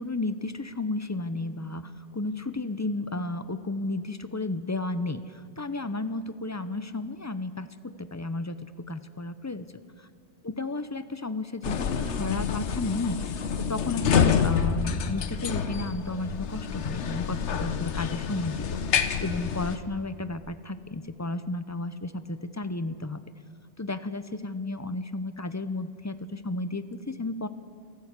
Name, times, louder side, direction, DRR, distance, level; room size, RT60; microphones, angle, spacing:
voice 1, 0.0-8.6 8.9-9.7 10.6-23.2 23.8-27.5, left 2 dB, 20° left, 12 dB, 0.5 m, -33 dB
sound 1, 11.6-19.8, left 7 dB, 85° left, 1.2 m, -28 dB
28.5 x 11.5 x 8.2 m, 2.2 s
omnidirectional pair, 1.2 m